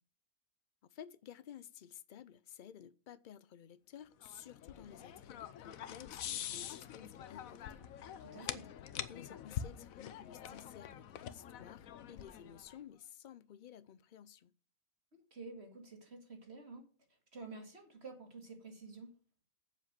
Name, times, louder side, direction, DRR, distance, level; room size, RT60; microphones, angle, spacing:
voice 1, 0.8-7.8 8.1-8.6 9.1-14.5, left 9 dB, 60° left, 0.5 m, -54 dB
sound 1, 4.2-12.8, left 10 dB, 90° left, 1.2 m, -45 dB
voice 2, 8.2-8.7 15.1-16.9 17.3-19.1, right 3 dB, 50° right, 2.4 m, -50 dB
8.0 x 7.2 x 7.4 m
omnidirectional pair, 1.4 m